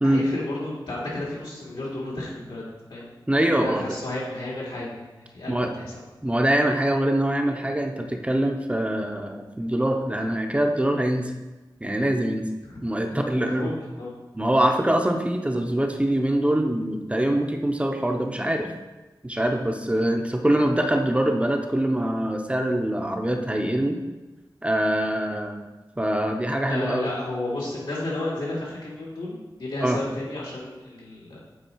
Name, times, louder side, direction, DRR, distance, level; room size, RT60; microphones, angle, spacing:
voice 1, 0.0-2.6 2.9-3.1 3.5-6.0 12.6-12.7 13.1-14.1 26.7-31.4, left 2 dB, 85° left, -7 dB, 2.5 m, -32 dB
voice 2, 3.3-4.0 5.5-5.7 6.2-11.3 11.8-12.5 12.8-13.7 14.3-18.7 19.2-24.0 24.6-25.6 26.0-27.1 29.8-30.0, right 1 dB, 15° right, 3 dB, 0.6 m, -24 dB
8.0 x 4.0 x 4.5 m, 1.1 s
wide cardioid pair, 90°, 8 cm